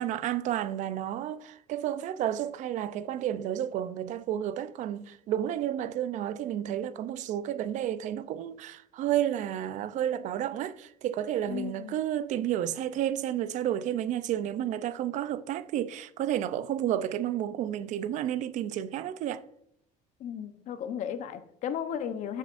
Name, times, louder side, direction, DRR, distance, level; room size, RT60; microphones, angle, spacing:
voice 1, 0.0-19.4, right 11 dB, 60° right, 0.6 m, -31 dB
voice 2, 11.5-12.0 20.2-22.4, left 8 dB, 60° left, 0.9 m, -35 dB
14.0 x 7.5 x 2.6 m
cardioid pair, 130°, 14 cm